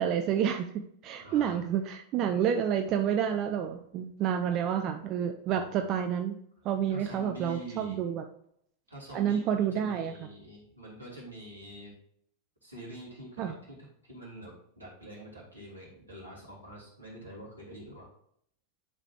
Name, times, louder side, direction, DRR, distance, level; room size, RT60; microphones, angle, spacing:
voice 1, 0.0-6.4 6.6-8.2 9.1-10.1 13.4-13.5, right 8 dB, 35° right, 6 dB, 0.5 m, -29 dB
voice 2, 1.2-1.6 5.5-5.9 6.9-8.0 8.9-11.9 12.6-13.8 14.0-18.1, right 1 dB, 85° right, -4 dB, 2.9 m, -46 dB
11.0 x 5.0 x 2.9 m, 0.69 s
figure-of-eight pair, 90°, 0 cm